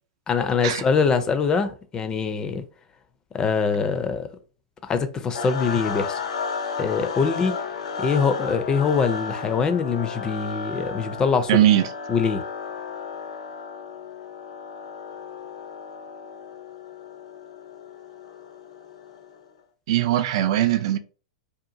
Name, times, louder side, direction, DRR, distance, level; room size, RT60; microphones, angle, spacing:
voice 1, 0.3-2.6 3.3-4.2 4.9-6.2 6.8-7.5 8.0-11.6 12.1-12.4, left 5 dB, 20° left, 0.4 m, -23 dB
sound 1, 5.3-19.4, left 5 dB, 80° left, 0.5 m, -34 dB
voice 2, 11.5-11.9 19.9-21.0, right 12 dB, 55° right, 0.4 m, -20 dB
2.7 x 2.2 x 2.6 m
hypercardioid pair, 120°, 3 cm